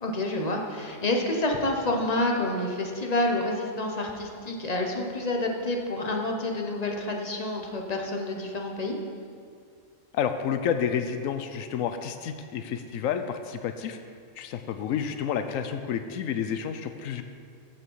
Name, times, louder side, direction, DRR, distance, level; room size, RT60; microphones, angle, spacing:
voice 1, 0.0-9.0, left 1 dB, 30° left, 1 dB, 1.1 m, -28 dB
voice 2, 10.1-14.0 14.4-17.2, left 8 dB, 90° left, 8 dB, 1.0 m, -30 dB
15.0 x 6.2 x 4.7 m, 2.2 s
omnidirectional pair, 1.4 m